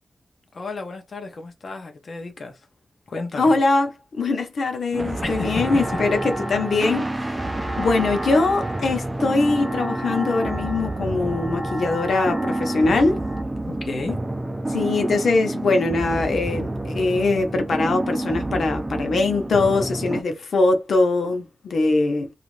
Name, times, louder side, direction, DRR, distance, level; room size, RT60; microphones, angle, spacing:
voice 1, 0.5-2.6 3.1-3.5 5.2-5.7 13.7-14.2, left 3 dB, 55° left, 0.6 m, -32 dB
voice 2, 3.3-7.4 7.8-13.2 14.7-22.3, left 3 dB, 90° left, 0.7 m, -22 dB
sound 1, 4.9-20.2, right 1 dB, 20° right, 0.3 m, -29 dB
sound 2, 5.2-13.4, right 1 dB, 10° left, 1.2 m, -33 dB
2.5 x 2.4 x 3.1 m
wide cardioid pair, 160°, 0 cm